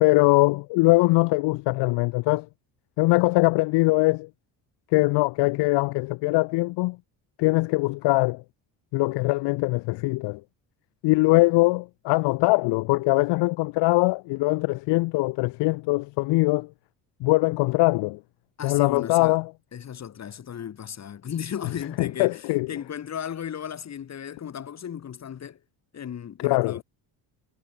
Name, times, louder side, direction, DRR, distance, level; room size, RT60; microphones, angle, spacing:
voice 1, 0.0-2.5 3.0-4.3 4.9-7.0 7.4-8.4 8.9-10.4 11.0-16.7 17.2-18.2 18.6-19.5 22.0-22.7 26.4-26.8, left 23 dB, 75° left, 0.7 m, -22 dB
voice 2, 18.6-19.4 19.7-25.6 25.9-26.8, left 8 dB, 40° left, 3.0 m, -35 dB
cardioid pair, 140°, 42 cm